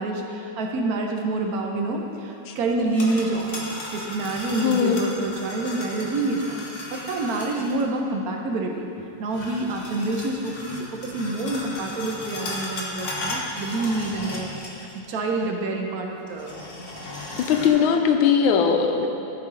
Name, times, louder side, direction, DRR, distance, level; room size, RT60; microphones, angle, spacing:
voice 1, 0.0-3.6 3.9-6.6 6.9-8.9 9.2-14.5 14.9-16.5 17.3-17.4, right 2 dB, 65° right, 2 dB, 1.0 m, -27 dB
sound 1, 2.7-7.8 9.3-15.0 15.3-15.4 16.3-17.7, left 1 dB, 45° left, 1.2 m, -35 dB
voice 2, 4.6-5.0 17.4-19.1, left 7 dB, 85° left, 4 dB, 1.5 m, -20 dB
12.5 x 4.7 x 3.7 m, 2.8 s
omnidirectional pair, 2.2 m